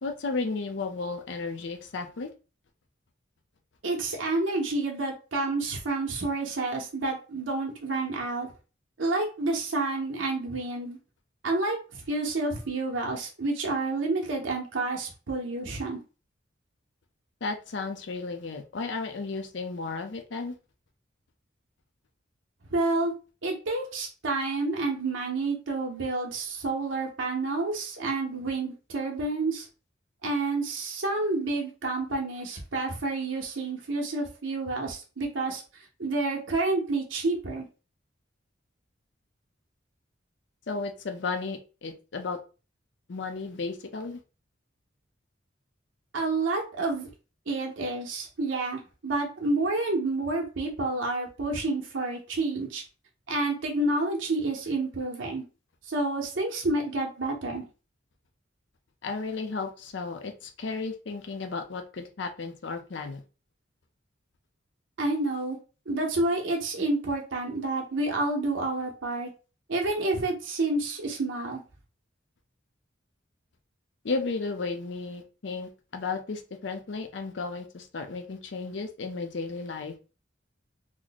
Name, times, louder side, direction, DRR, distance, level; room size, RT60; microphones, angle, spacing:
voice 1, 0.0-2.3 17.4-20.5 40.7-42.4 43.1-44.2 59.0-63.2 74.0-79.9, left 4 dB, 65° left, 6 dB, 0.6 m, -34 dB
voice 2, 3.8-8.5 9.0-11.0 11.4-16.0 22.7-23.1 23.4-29.7 30.2-37.7 46.1-47.1 47.5-52.8 53.3-55.4 55.8-57.7 65.0-65.6 65.9-69.3 69.7-71.6, right 2 dB, 85° right, 0 dB, 0.8 m, -29 dB
3.1 x 2.1 x 3.9 m, 0.34 s
head